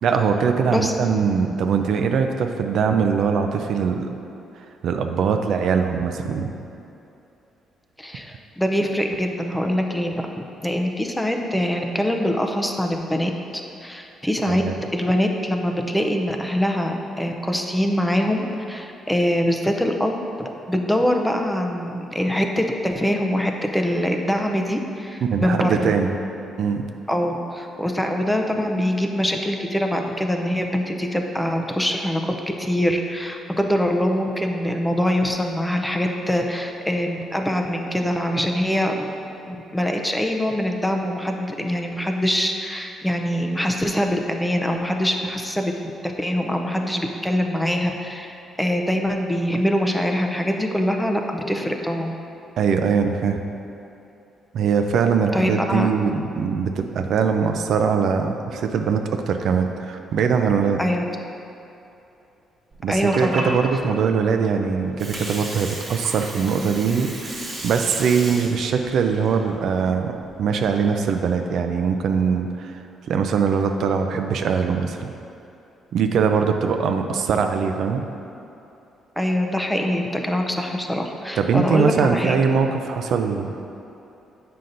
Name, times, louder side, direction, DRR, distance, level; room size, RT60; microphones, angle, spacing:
voice 1, 0.0-4.1 4.8-6.6 14.5-14.7 25.3-26.2 26.6-26.8 52.6-53.4 54.5-60.8 62.8-70.1 70.4-72.8 73.1-75.1 75.9-78.0 81.4-83.5, right 6 dB, 70° right, 5 dB, 0.4 m, -22 dB
voice 2, 8.0-10.2 10.6-13.3 13.8-14.6 14.9-25.9 27.1-39.1 39.5-45.7 46.0-52.1 55.3-55.9 60.8-61.0 62.9-63.6 79.2-82.4, equal, 5° left, 3 dB, 0.5 m, -23 dB
Water, 62.7-70.7, right 1 dB, 30° right, 1.4 m, -35 dB
7.6 x 5.5 x 2.6 m, 2.8 s
cardioid pair, 100°, 0 cm